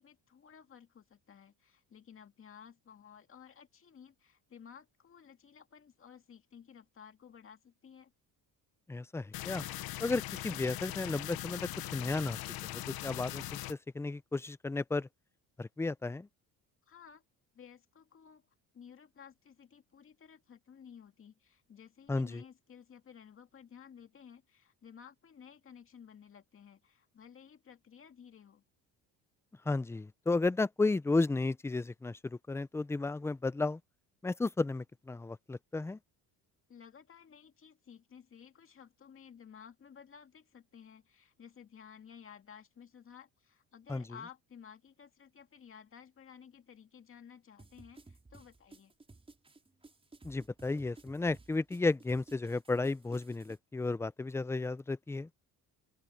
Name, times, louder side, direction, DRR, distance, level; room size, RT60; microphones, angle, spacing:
voice 1, 0.0-8.1 16.9-17.2 17.5-18.5 18.7-28.6 36.7-48.9, left 7 dB, 35° left, 2.2 m, -55 dB
voice 2, 8.9-9.7 10.0-15.1 15.6-16.3 22.1-22.4 29.7-33.8 34.2-36.0 43.9-44.1 50.2-55.3, left 3 dB, 5° left, 0.5 m, -33 dB
sound 1, 9.3-13.7, left 16 dB, 70° left, 1.0 m, -41 dB
sound 2, 47.6-53.6, right 3 dB, 15° right, 5.5 m, -56 dB
open air
cardioid pair, 140°, 37 cm